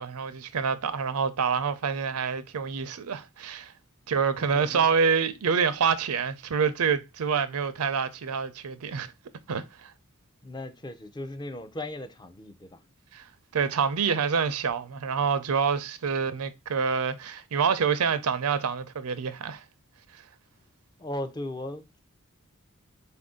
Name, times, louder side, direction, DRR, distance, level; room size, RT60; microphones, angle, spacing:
voice 1, 0.0-3.7 4.1-9.1 9.5-9.9 13.1-13.2 13.5-19.6, right 6 dB, 85° right, 0.5 m, -27 dB
voice 2, 4.4-4.9 10.4-12.8 21.0-22.0, left 1 dB, 20° left, 0.4 m, -37 dB
4.2 x 2.6 x 3.6 m
head